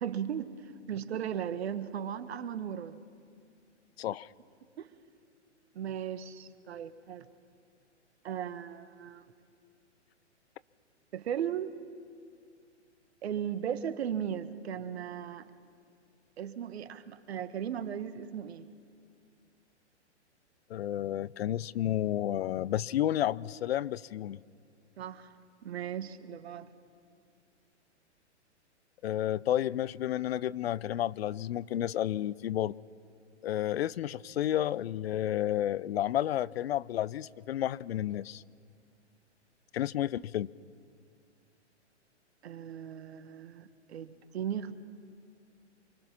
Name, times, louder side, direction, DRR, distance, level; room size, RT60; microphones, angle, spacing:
voice 1, 0.0-0.5 0.9-3.0 4.8-4.9 5.7-7.3 8.2-9.2 11.1-11.7 13.2-15.5 16.4-18.7 25.0-25.3 25.6-26.7 42.4-44.7, right 9 dB, 60° right, 1.5 m, -36 dB
voice 2, 4.0-4.3 20.7-24.4 29.0-32.7 33.4-38.4 39.7-40.5, left 12 dB, 60° left, 0.6 m, -31 dB
25.5 x 24.5 x 5.9 m
hypercardioid pair, 125°, 35 cm